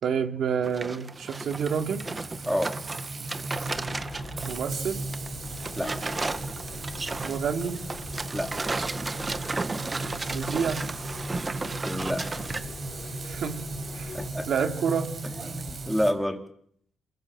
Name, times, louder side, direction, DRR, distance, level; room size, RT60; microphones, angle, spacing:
voice 1, 0.0-2.0 4.5-5.0 7.2-7.8 10.3-10.9 13.2-13.6 13.9-14.1 14.5-15.1, right 7 dB, 65° right, 5 dB, 3.5 m, -28 dB
sound 1, 0.6-4.7 5.0-12.6, right 3 dB, 25° right, 1.7 m, -34 dB
Frying (food), 1.1-16.1, right 2 dB, 40° right, 5.8 m, -37 dB
sound 2, 3.6-14.3, left 4 dB, 45° left, 5.6 m, -44 dB
voice 2, 11.8-12.2 14.1-14.5 15.3-16.4, equal, ahead, 4 dB, 4.0 m, -28 dB
27.0 x 22.0 x 7.9 m, 0.66 s
cardioid pair, 90°, 0 cm